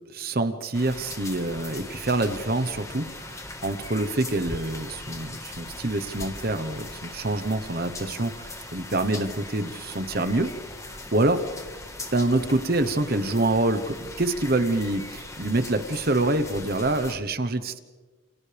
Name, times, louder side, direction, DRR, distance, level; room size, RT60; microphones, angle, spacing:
voice 1, 0.1-10.5 10.9-11.4 12.1-17.8, right 2 dB, 45° right, 9 dB, 1.1 m, -26 dB
sound 1, 0.7-17.2, left 2 dB, 15° left, 1.6 m, -40 dB
30.0 x 28.0 x 3.5 m, 1.3 s
head